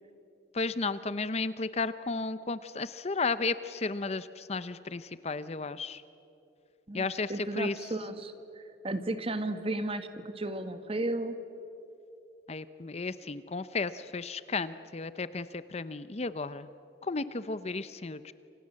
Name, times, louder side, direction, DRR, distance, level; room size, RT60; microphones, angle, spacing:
voice 1, 0.5-6.0 6.9-7.7 12.5-16.7 17.0-18.3, left 3 dB, 35° left, 14 dB, 0.6 m, -33 dB
voice 2, 6.9-11.4, right 2 dB, 30° right, 10 dB, 1.5 m, -34 dB
28.5 x 26.5 x 7.6 m, 2.7 s
head